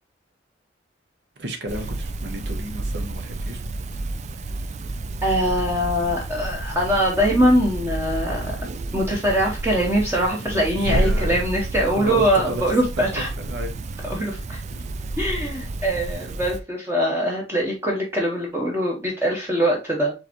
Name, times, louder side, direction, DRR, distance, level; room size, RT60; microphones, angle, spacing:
voice 1, 1.4-3.6 10.4-11.4 12.0-12.7 13.2-14.3 14.7-15.0, right 1 dB, 65° right, 1.1 m, -34 dB
sound 1, 1.7-16.6, right 2 dB, 40° right, 0.4 m, -30 dB
voice 2, 5.2-8.5 8.9-13.3 14.1-14.6 15.2-20.1, equal, 15° right, 0.9 m, -22 dB
4.8 x 3.3 x 2.9 m
head